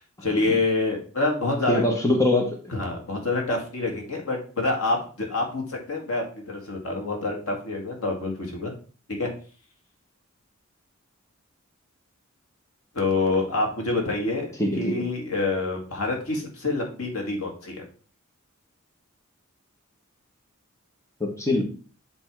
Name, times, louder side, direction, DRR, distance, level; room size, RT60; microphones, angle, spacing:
voice 1, 0.2-1.8 2.7-8.7 9.1-9.3 12.9-17.8, left 2 dB, 85° left, 1 dB, 2.1 m, -27 dB
voice 2, 1.7-2.6 14.6-15.0 21.2-21.6, left 1 dB, 15° left, 1 dB, 1.1 m, -23 dB
7.9 x 3.4 x 4.6 m, 0.39 s
head